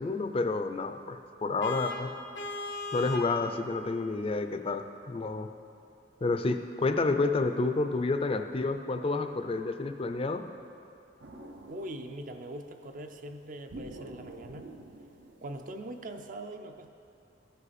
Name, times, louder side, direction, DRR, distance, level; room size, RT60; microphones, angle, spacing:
voice 1, 0.0-2.1 2.9-5.5 6.2-10.4, left 3 dB, 30° left, 7 dB, 0.4 m, -29 dB
Vehicle horn car horn honking, 1.6-3.4, left 2 dB, 70° left, 0.8 m, -37 dB
sound 1, 11.2-12.7 13.7-16.1, right 1 dB, 85° right, 0.9 m, -48 dB
voice 2, 11.7-14.7 15.4-17.0, right 1 dB, 45° right, 6 dB, 0.5 m, -42 dB
15.0 x 5.4 x 4.1 m, 2.5 s
head